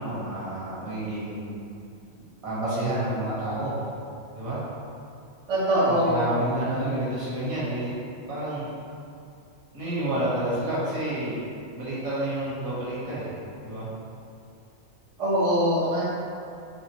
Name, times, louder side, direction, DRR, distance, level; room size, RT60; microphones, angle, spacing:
voice 1, 0.0-1.6 2.4-3.8 4.3-4.6 5.8-7.9 8.3-8.7 9.7-11.3 11.7-13.3 13.6-13.9, right 1 dB, 85° right, -10 dB, 1.9 m, -29 dB
voice 2, 5.5-6.4 15.2-16.0, equal, 70° right, -11 dB, 1.4 m, -22 dB
5.0 x 3.3 x 3.0 m, 2.5 s
omnidirectional pair, 1.4 m